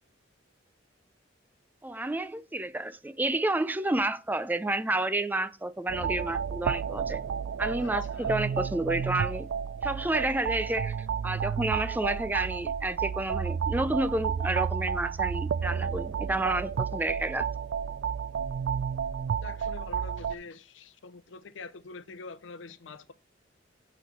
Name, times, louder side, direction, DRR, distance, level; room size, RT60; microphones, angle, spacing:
voice 1, 1.8-7.2 7.6-9.5 9.8-17.5, right 2 dB, 10° right, 0.4 m, -30 dB
sound 1, 5.9-20.4, right 7 dB, 80° right, 0.3 m, -31 dB
voice 2, 7.8-8.3 19.4-23.1, left 4 dB, 90° left, 0.6 m, -45 dB
8.7 x 4.2 x 5.4 m
head